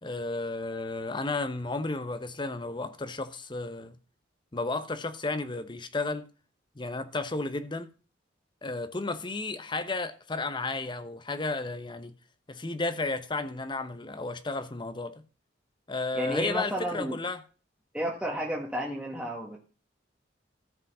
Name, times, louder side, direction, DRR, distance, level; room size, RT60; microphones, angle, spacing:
voice 1, 0.0-4.0 4.5-6.3 6.8-7.9 8.6-12.1 12.5-15.2 15.9-17.4, left 3 dB, 25° left, 0.9 m, -33 dB
voice 2, 16.1-17.2 17.9-19.6, equal, 5° right, 1.4 m, -32 dB
13.5 x 5.2 x 5.4 m
head